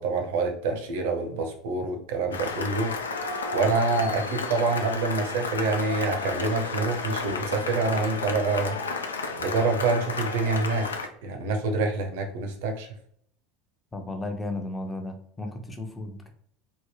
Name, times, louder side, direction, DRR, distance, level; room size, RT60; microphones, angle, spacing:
voice 1, 0.0-2.9 3.5-8.8 9.4-10.9 11.2-12.9, right 3 dB, 60° right, 4 dB, 0.6 m, -26 dB
Cheering / Applause, 2.3-11.1, left 4 dB, 75° left, 0.4 m, -32 dB
voice 2, 13.9-16.3, left 2 dB, 15° left, 5 dB, 0.6 m, -34 dB
3.4 x 2.1 x 3.2 m, 0.65 s
figure-of-eight pair, 75°, 0 cm